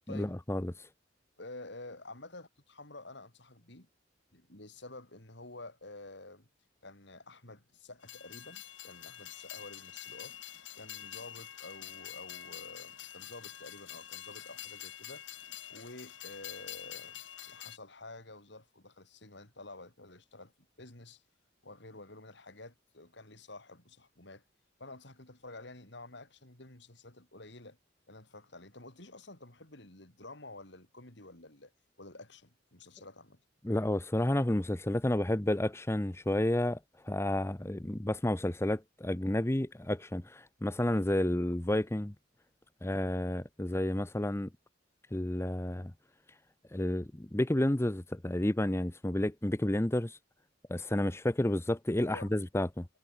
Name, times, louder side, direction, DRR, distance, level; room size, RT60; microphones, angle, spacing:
voice 1, 0.1-0.9 33.6-42.1 42.8-44.5 45.1-45.9 46.7-50.2 50.7-52.9, left 1 dB, 15° left, 0.8 m, -31 dB
voice 2, 1.4-3.9 4.3-6.5 6.8-10.4 10.8-15.2 15.7-20.5 20.8-21.2 21.6-24.4 24.8-27.8 28.1-31.7 32.0-33.4 52.0-52.3, left 2 dB, 65° left, 4.7 m, -50 dB
Train, 8.0-17.8, left 11 dB, 85° left, 3.8 m, -46 dB
head